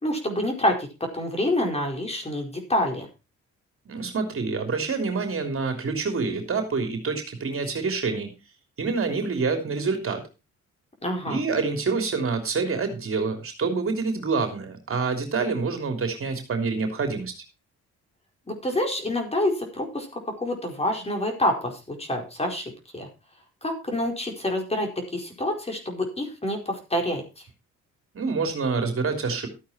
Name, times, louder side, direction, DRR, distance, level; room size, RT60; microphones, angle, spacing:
voice 1, 0.0-3.1 11.0-11.4 18.5-23.1 23.6-27.2, left 1 dB, 20° left, 2 dB, 4.7 m, -27 dB
voice 2, 3.9-8.3 8.8-10.2 11.3-17.3 28.1-29.5, right 4 dB, 45° right, 5 dB, 3.2 m, -27 dB
13.5 x 8.7 x 4.3 m, 0.29 s
cardioid pair, 90°, 30 cm